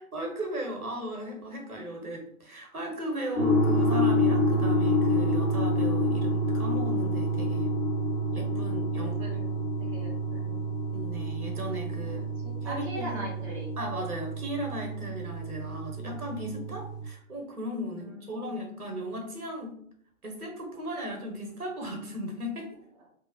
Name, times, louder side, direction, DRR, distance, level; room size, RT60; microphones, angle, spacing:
voice 1, 0.0-7.7 8.3-9.2 10.9-12.3 12.6-13.2 13.8-19.7 20.2-22.8, equal, 85° right, 2 dB, 1.1 m, -36 dB
sound 1, 3.3-17.0, equal, 40° left, 1.2 m, -28 dB
voice 2, 9.0-10.7 12.1-13.7 17.9-18.6, right 1 dB, 25° right, -5 dB, 0.6 m, -41 dB
2.8 x 2.1 x 2.6 m, 0.63 s
figure-of-eight pair, 130°, 43 cm